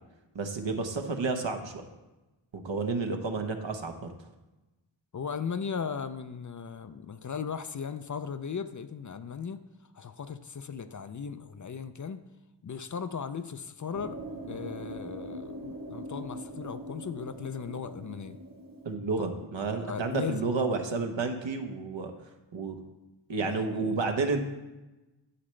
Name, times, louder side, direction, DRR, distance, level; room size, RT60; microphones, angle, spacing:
voice 1, 0.3-1.9 2.5-4.1 18.8-22.1 22.5-22.8 23.3-24.4, right 4 dB, 75° right, 4 dB, 1.0 m, -31 dB
voice 2, 5.1-9.6 9.9-12.2 12.6-14.2 14.5-18.4 19.2-19.3 19.8-20.6 23.4-24.1, left 6 dB, 40° left, 10 dB, 0.5 m, -37 dB
sound 1, 13.9-19.0, right 1 dB, 50° right, 1.0 m, -42 dB
9.9 x 7.5 x 3.2 m, 1.1 s
cardioid pair, 45°, 46 cm